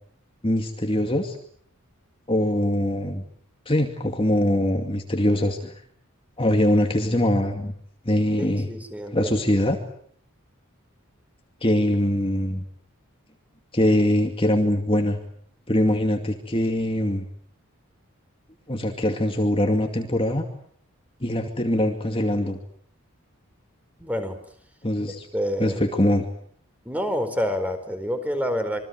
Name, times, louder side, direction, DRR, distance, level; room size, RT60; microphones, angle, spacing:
voice 1, 0.4-1.4 2.3-3.2 3.7-5.8 6.4-7.7 8.0-8.7 9.1-9.8 11.6-12.6 13.7-15.2 15.7-17.3 18.7-20.5 21.2-22.6 24.8-25.3 25.6-26.3, left 1 dB, 25° left, 4 dB, 2.4 m, -22 dB
voice 2, 8.4-9.4 24.0-24.4 25.3-25.8 26.8-28.8, equal, 5° right, 8 dB, 4.5 m, -27 dB
27.5 x 24.0 x 7.9 m, 0.63 s
head